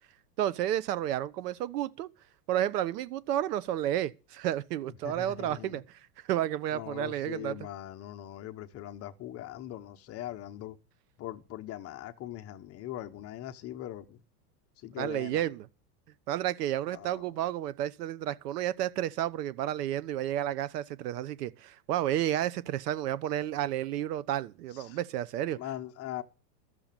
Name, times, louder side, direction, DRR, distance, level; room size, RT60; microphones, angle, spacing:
voice 1, 0.4-2.1 2.5-5.8 6.3-7.6 15.0-15.7 16.3-25.6, right 12 dB, 70° right, 1.2 m, -31 dB
voice 2, 5.0-5.8 6.7-10.8 11.2-14.2 14.8-15.4 16.9-17.3 24.7-25.0 25.6-26.2, left 13 dB, 30° left, 0.9 m, -41 dB
13.0 x 6.9 x 9.0 m
supercardioid pair, 135°, 49 cm